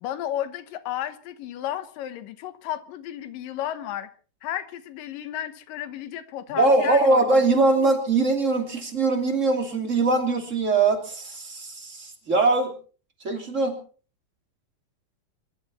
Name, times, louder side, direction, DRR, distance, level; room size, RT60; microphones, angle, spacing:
voice 1, 0.0-4.1 4.4-7.2, left 11 dB, 90° left, 2.8 m, -33 dB
voice 2, 6.5-12.7 13.2-13.8, right 3 dB, 25° right, 2.8 m, -22 dB
24.5 x 13.0 x 4.3 m
omnidirectional pair, 3.8 m